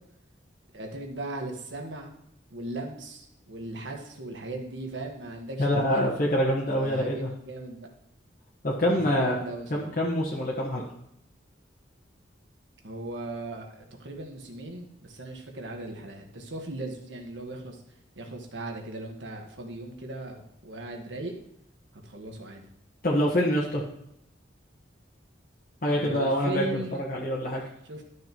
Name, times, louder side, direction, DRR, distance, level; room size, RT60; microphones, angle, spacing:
voice 1, 0.7-2.1 2.5-6.1 6.7-7.9 8.9-9.9 12.8-17.8 18.1-21.3 22.0-22.6 26.0-27.0 27.9-28.0, right 2 dB, 85° right, 2 dB, 1.5 m, -38 dB
voice 2, 5.6-7.3 8.6-9.4 9.7-10.8 23.0-23.8 25.8-27.6, equal, 50° left, -5 dB, 1.4 m, -25 dB
12.5 x 6.4 x 3.0 m, 0.76 s
head